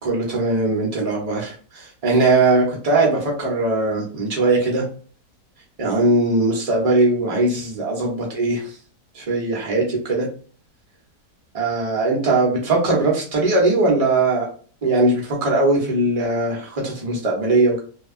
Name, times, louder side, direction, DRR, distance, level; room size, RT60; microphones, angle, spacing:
voice 1, 0.0-4.8 5.8-8.8 9.1-10.3 11.5-14.5 14.8-17.8, right 2 dB, 35° right, -1 dB, 0.6 m, -20 dB
2.8 x 2.3 x 2.4 m, 0.42 s
omnidirectional pair, 1.8 m